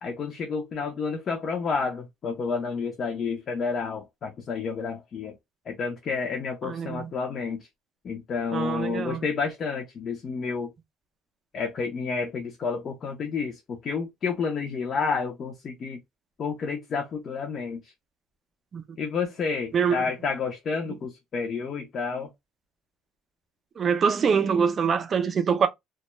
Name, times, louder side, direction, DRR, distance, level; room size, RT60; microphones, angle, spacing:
voice 1, 0.0-5.3 5.7-7.7 8.0-10.7 11.5-16.0 16.4-17.9 19.0-22.3, left 5 dB, 40° left, 0.5 m, -30 dB
voice 2, 6.6-7.1 8.5-9.2 18.7-18.8 19.7-20.1 23.8-25.7, right 6 dB, 35° right, 0.4 m, -24 dB
2.2 x 2.0 x 2.9 m
cardioid pair, 140°, 0 cm